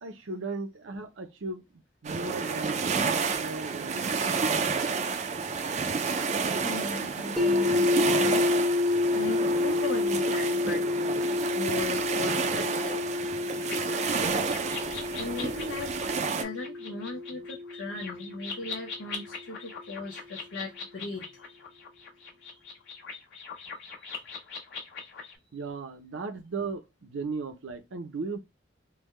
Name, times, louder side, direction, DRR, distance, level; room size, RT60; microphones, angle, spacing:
voice 1, 0.0-1.6 2.0-4.2 25.5-28.4, right 3 dB, 85° right, 0.7 m, -36 dB
sound 1, 2.0-16.4, right 5 dB, 35° right, 0.4 m, -30 dB
voice 2, 6.6-10.8 11.5-13.2 14.2-14.4 14.8-15.9 16.3-21.6 23.6-24.3, left 3 dB, 85° left, 0.6 m, -38 dB
sound 2, 7.4-19.3, left 3 dB, ahead, 0.7 m, -29 dB
sound 3, 13.6-25.4, left 5 dB, 70° left, 1.4 m, -42 dB
3.4 x 2.2 x 3.1 m
head